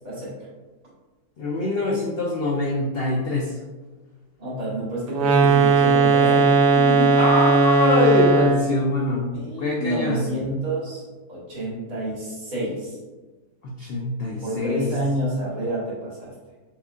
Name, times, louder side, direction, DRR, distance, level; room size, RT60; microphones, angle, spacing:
voice 1, 0.0-0.4 4.4-7.2 9.2-12.9 14.4-16.3, right 1 dB, 60° right, -7 dB, 2.0 m, -28 dB
voice 2, 1.4-3.6 7.2-9.3 9.6-10.3 13.6-14.9, left 2 dB, 85° left, -2 dB, 0.5 m, -24 dB
sound 1, 5.1-8.8, right 4 dB, 85° right, 1.1 m, -17 dB
5.7 x 2.3 x 2.4 m, 1.3 s
omnidirectional pair, 1.7 m